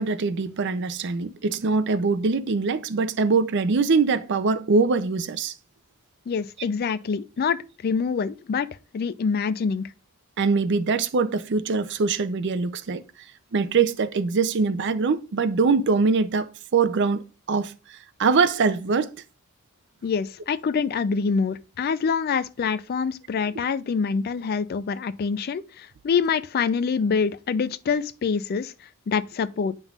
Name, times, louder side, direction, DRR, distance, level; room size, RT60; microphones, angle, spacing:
voice 1, 0.0-5.5 10.4-13.0 13.5-17.2 17.5-19.1, right 4 dB, 55° right, 0.5 m, -23 dB
voice 2, 6.3-8.7 8.9-9.9 20.0-29.7, left 5 dB, 45° left, 0.3 m, -26 dB
8.9 x 5.3 x 2.4 m
head